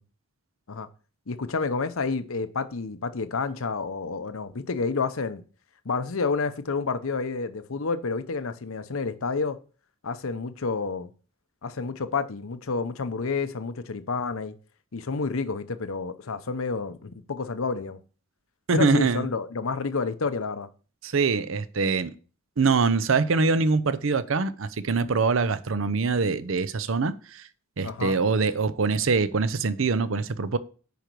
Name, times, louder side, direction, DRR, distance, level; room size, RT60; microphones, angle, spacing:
voice 1, 1.3-5.4 5.8-9.6 10.0-11.1 11.6-14.5 14.9-18.0 18.7-20.7 27.8-28.2, left 4 dB, 80° left, 0.8 m, -29 dB
voice 2, 18.7-19.3 21.0-22.1 22.6-27.5 27.8-30.6, right 4 dB, 70° right, 0.6 m, -24 dB
9.3 x 5.1 x 4.6 m
head